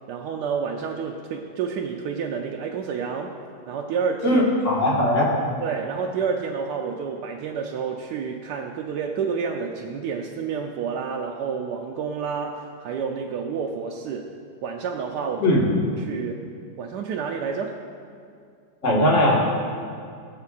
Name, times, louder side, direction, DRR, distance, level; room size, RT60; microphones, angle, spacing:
voice 1, 0.1-3.3 3.7-4.4 5.6-14.4 14.6-15.6 16.0-16.5 16.8-17.7, right 6 dB, 75° right, 1 dB, 1.1 m, -29 dB
voice 2, 4.2-5.3 15.4-15.6 18.8-19.3, left 1 dB, 40° left, -4 dB, 1.8 m, -19 dB
19.0 x 6.5 x 2.4 m, 2.3 s
omnidirectional pair, 2.0 m